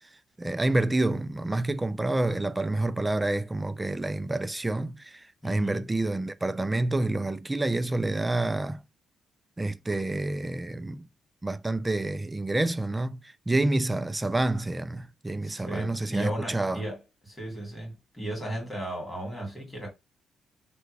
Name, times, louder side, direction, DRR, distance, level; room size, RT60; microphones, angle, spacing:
voice 1, 0.4-8.8 9.6-11.1 11.4-16.8, right 2 dB, 15° right, 0.3 m, -28 dB
voice 2, 5.4-5.9 15.4-19.9, right 1 dB, 15° left, 2.2 m, -35 dB
3.3 x 2.2 x 3.3 m
cardioid pair, 90°, 0 cm